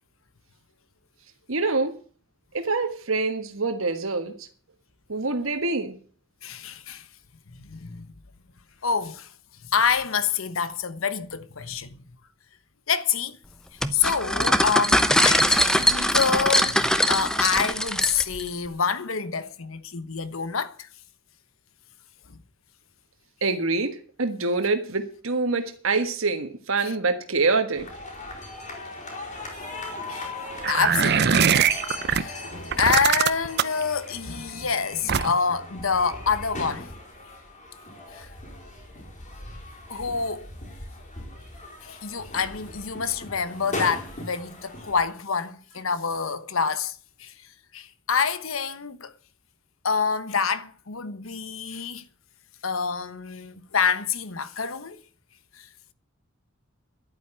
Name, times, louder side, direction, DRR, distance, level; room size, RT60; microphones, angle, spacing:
voice 1, 1.5-2.0 2.5-4.5 5.1-6.0 23.4-27.9, right 3 dB, 75° right, 1.6 m, -25 dB
voice 2, 6.4-7.1 7.5-8.1 8.8-9.3 9.6-12.0 12.9-13.4 13.9-20.9 22.3-22.4 26.8-26.9 30.1-30.3 30.7-31.5 32.1-32.5 32.8-36.9 38.1-38.3 39.9-40.5 41.8-47.3 47.7-49.1 49.8-52.0 52.6-55.0 55.5-55.7, left 6 dB, 80° left, 1.2 m, -27 dB
sound 1, 13.8-18.5, equal, 5° left, 0.9 m, -22 dB
sound 2, 27.7-45.1, left 2 dB, 40° left, 4.7 m, -39 dB
sound 3, 30.6-32.2 32.7-33.8 35.1-35.5, right 7 dB, 55° right, 0.7 m, -21 dB
11.0 x 9.2 x 9.9 m
head